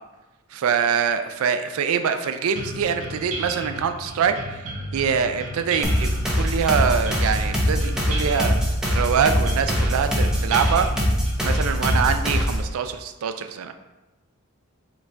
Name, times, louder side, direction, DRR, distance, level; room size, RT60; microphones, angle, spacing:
voice 1, 0.5-4.7 4.9-8.6 8.9-10.9 11.4-13.7, right 7 dB, 80° right, 8 dB, 0.3 m, -24 dB
sound 1, 2.6-12.2, right 1 dB, 35° right, 1.0 m, -34 dB
sound 2, 5.8-12.7, equal, 5° right, 0.6 m, -23 dB
5.1 x 2.4 x 3.3 m, 1.1 s
head